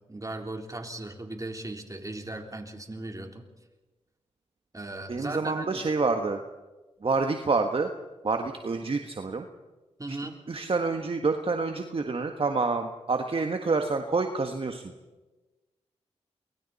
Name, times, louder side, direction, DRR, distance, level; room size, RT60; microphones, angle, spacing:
voice 1, 0.1-3.4 4.7-5.8 10.0-10.4, right 2 dB, 30° right, 3 dB, 3.7 m, -37 dB
voice 2, 5.1-6.4 7.0-7.9 8.2-9.4 10.1-10.2 10.5-14.8, right 4 dB, 50° right, 5 dB, 1.6 m, -27 dB
28.0 x 23.0 x 4.2 m, 1.2 s
supercardioid pair, 40°, 12 cm